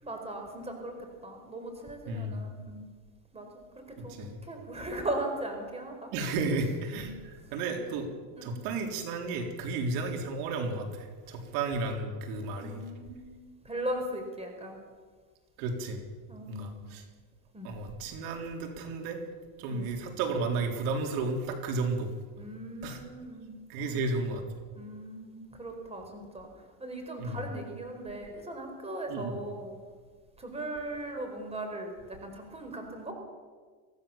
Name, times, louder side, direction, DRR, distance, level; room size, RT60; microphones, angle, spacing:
voice 1, 0.0-2.8 3.3-4.1 4.4-6.1 6.9-7.1 8.4-8.5 12.6-14.8 16.3-16.9 17.5-17.7 19.7-19.9 22.4-24.0 24.7-26.5 26.8-29.8 30.4-33.1, right 1 dB, 10° right, 4 dB, 4.7 m, -38 dB
voice 2, 2.1-2.4 4.1-4.4 6.1-7.1 7.5-8.1 8.4-12.8 15.6-16.0 16.5-17.0 17.6-19.2 19.6-22.1 22.8-23.0 23.7-24.4 27.2-27.4 29.1-29.4, right 3 dB, 70° right, 3 dB, 3.9 m, -33 dB
24.0 x 16.5 x 7.2 m, 1.5 s
cardioid pair, 140°, 48 cm